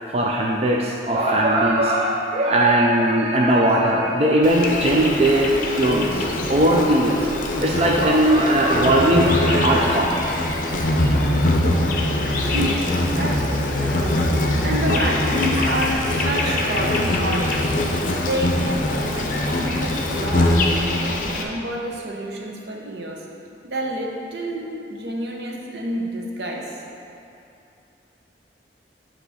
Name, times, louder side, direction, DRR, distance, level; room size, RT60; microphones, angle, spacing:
voice 1, 0.1-7.3 7.6-11.3 14.9-15.0 15.6-15.8 16.4-17.0, right 1 dB, 35° right, -2 dB, 0.4 m, -20 dB
Insect, 4.4-21.4, left 1 dB, 45° left, 0.6 m, -22 dB
voice 2, 12.5-14.3 14.6-17.7 18.2-20.7 21.0-23.3 23.6-26.8, equal, 70° right, -1 dB, 0.8 m, -28 dB
7.9 x 3.0 x 6.2 m, 2.7 s
head